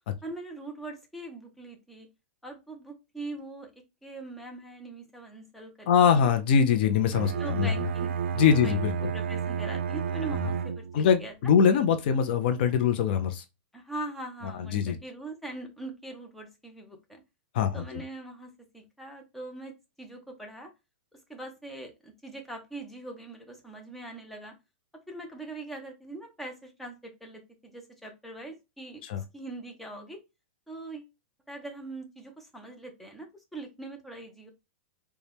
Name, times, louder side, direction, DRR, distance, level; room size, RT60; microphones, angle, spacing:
voice 1, 0.2-2.1 2.4-3.7 4.0-5.9 6.2-6.3 7.3-11.3 13.7-17.2 17.7-19.7 20.0-20.7 21.3-24.5 25.1-29.0 29.3-30.2 30.7-31.1 31.5-33.3 33.5-34.5, right 2 dB, ahead, 0.7 m, -42 dB
voice 2, 5.9-7.7 8.3-9.1 10.3-10.4 10.9-13.4 14.6-15.0 17.5-18.0 29.0-29.2, left 7 dB, 55° left, 0.5 m, -23 dB
Bowed string instrument, 7.1-11.1, right 7 dB, 90° right, 0.3 m, -31 dB
4.1 x 2.3 x 3.4 m
supercardioid pair, 150°, 6 cm